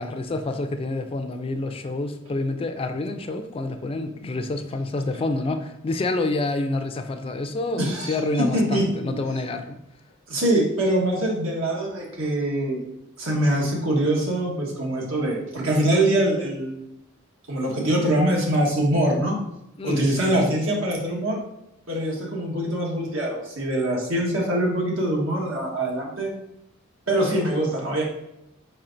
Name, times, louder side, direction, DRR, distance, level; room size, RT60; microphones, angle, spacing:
voice 1, 0.0-9.8 19.8-20.5, left 2 dB, 30° left, 7 dB, 0.3 m, -28 dB
voice 2, 7.8-8.2 8.5-9.2 10.3-12.8 13.2-16.8 17.5-19.4 19.8-21.4 21.9-26.3 27.1-28.0, right 1 dB, 90° right, -2 dB, 1.3 m, -23 dB
4.7 x 4.3 x 2.5 m, 0.84 s
head